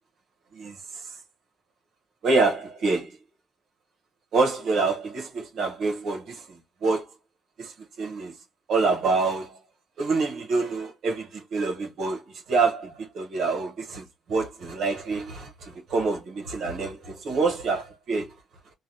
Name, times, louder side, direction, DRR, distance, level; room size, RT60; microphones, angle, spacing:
voice 1, 0.5-1.2 2.2-3.2 4.3-7.1 7.6-8.3 8.7-9.6 10.0-18.4, right 4 dB, 70° right, 0.8 m, -27 dB
3.1 x 2.2 x 2.6 m
cardioid pair, 90°, 0 cm